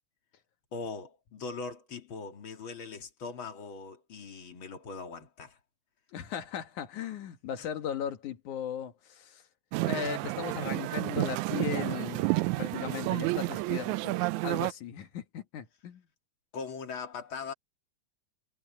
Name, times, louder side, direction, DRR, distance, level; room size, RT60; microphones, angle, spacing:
voice 1, 0.7-5.6 16.5-17.5, left 4 dB, 40° left, 3.0 m, -40 dB
voice 2, 6.1-9.5 9.9-16.0, left 8 dB, 75° left, 2.9 m, -37 dB
sound 1, 9.7-14.7, right 20 dB, 80° right, 1.8 m, -30 dB
omnidirectional pair, 3.5 m